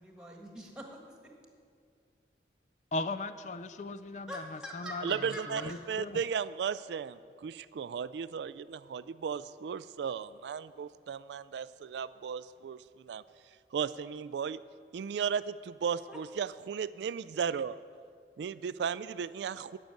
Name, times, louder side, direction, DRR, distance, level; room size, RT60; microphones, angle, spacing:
voice 1, 0.0-1.3 4.3-5.8 16.1-16.2, equal, 5° right, 1 dB, 1.5 m, -44 dB
voice 2, 2.9-6.2, left 2 dB, 40° left, 12 dB, 0.4 m, -38 dB
voice 3, 5.0-13.2 13.7-14.6 14.9-17.8 18.4-19.8, right 7 dB, 80° right, 16 dB, 0.3 m, -35 dB
13.5 x 6.4 x 9.4 m, 2.2 s
head